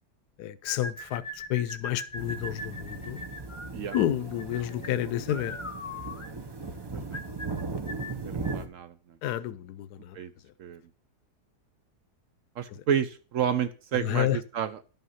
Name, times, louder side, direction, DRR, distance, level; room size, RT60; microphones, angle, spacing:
voice 1, 0.4-3.2 3.9-5.6 9.2-10.2 13.9-14.4, left 13 dB, 80° left, 1.2 m, -30 dB
sound 1, 0.7-8.7, left 2 dB, 30° left, 0.6 m, -41 dB
sound 2, 2.2-8.7, right 4 dB, 30° right, 0.4 m, -38 dB
voice 2, 8.1-9.0 10.1-10.3 10.6-10.8 12.6-14.8, right 8 dB, 65° right, 0.8 m, -30 dB
11.0 x 5.6 x 5.5 m
omnidirectional pair, 1.7 m